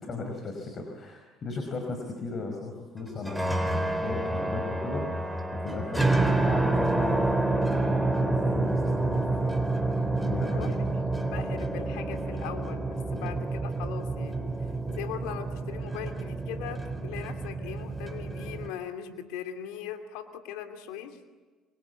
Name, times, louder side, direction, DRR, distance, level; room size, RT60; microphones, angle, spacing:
voice 1, 0.0-9.4 10.2-11.0 13.1-13.3, left 3 dB, 45° left, 3 dB, 5.5 m, -37 dB
sound 1, 3.1-18.7, right 2 dB, 5° right, 3.9 m, -28 dB
voice 2, 11.1-21.2, left 9 dB, 85° left, 7 dB, 2.7 m, -40 dB
28.0 x 24.5 x 8.5 m, 1.4 s
supercardioid pair, 85°, 0 cm